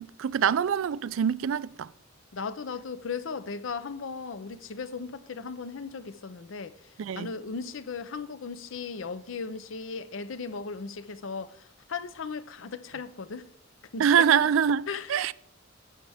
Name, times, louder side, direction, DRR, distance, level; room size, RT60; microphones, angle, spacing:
voice 1, 0.0-1.9 7.0-7.3 14.0-15.3, right 8 dB, 70° right, 0.3 m, -24 dB
voice 2, 2.3-13.5 13.9-14.3 14.9-15.3, left 5 dB, 65° left, 0.6 m, -37 dB
11.5 x 8.2 x 3.5 m
head